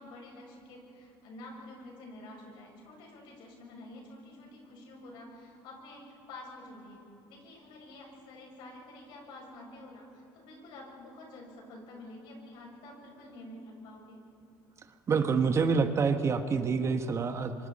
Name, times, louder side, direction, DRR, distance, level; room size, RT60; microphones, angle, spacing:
voice 1, 0.0-7.0 7.3-14.2, left 1 dB, 75° left, -1 dB, 7.2 m, -49 dB
voice 2, 15.1-17.5, right 5 dB, 35° right, 7 dB, 1.3 m, -27 dB
26.0 x 24.5 x 4.3 m, 2.6 s
cardioid pair, 110°, 8 cm